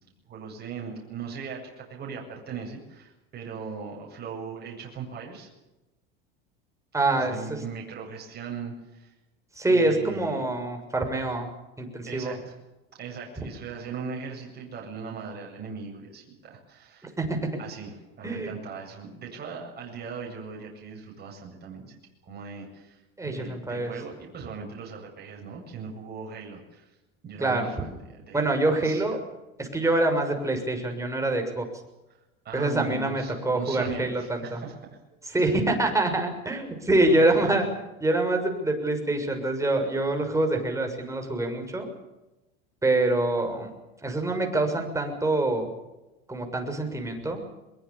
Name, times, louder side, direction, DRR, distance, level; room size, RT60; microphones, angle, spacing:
voice 1, 0.3-5.5 7.1-9.1 9.7-10.4 12.1-12.6 12.9-17.1 17.6-22.0 22.2-26.9 27.2-28.5 28.8-29.2 32.4-34.8 35.3-35.5 37.1-37.7, right 5 dB, 35° right, -1 dB, 7.9 m, -39 dB
voice 2, 6.9-7.6 9.6-11.5 11.8-12.4 13.4-13.5 17.2-17.4 18.2-18.5 23.2-23.9 27.4-27.7 28.3-29.2 29.6-31.6 32.5-34.6 35.3-37.6 38.0-41.9 42.8-43.7 44.0-45.7 46.3-47.4, right 2 dB, 10° right, 3 dB, 6.7 m, -25 dB
22.5 x 22.5 x 7.2 m, 1.0 s
supercardioid pair, 110°, 30 cm